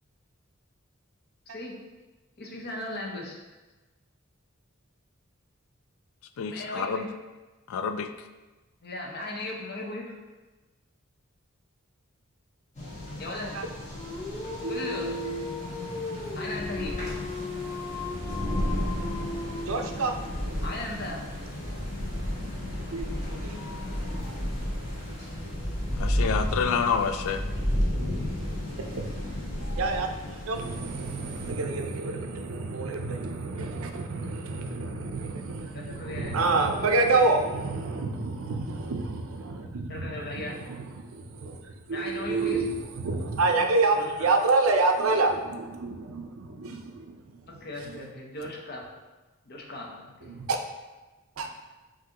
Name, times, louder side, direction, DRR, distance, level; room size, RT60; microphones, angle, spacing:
voice 1, 2.4-3.4 6.5-7.0 8.8-10.0 13.2-13.5 14.7-15.1 16.4-17.0 20.6-21.2 35.7-36.5 39.9-40.6 41.9-42.6 43.9-44.3 47.6-48.9 49.5-49.9 50.2-50.3, left 1 dB, 50° left, -1 dB, 0.7 m, -36 dB
voice 2, 6.4-7.0 7.7-8.1 26.0-27.4, left 6 dB, 80° left, 9 dB, 0.3 m, -28 dB
sound 1, 12.8-31.5, left 1 dB, 35° left, 1.3 m, -33 dB
Dog, 13.9-20.3, left 4 dB, 15° left, 0.4 m, -37 dB
voice 3, 14.6-15.5 19.7-20.1 22.9-23.1 23.4-23.6 29.0-29.1 29.8-40.1 40.7-42.6 43.0-47.4 50.3-50.6 51.4-51.5, right 3 dB, 80° right, 4 dB, 0.5 m, -28 dB
5.9 x 2.6 x 2.9 m, 1.2 s
head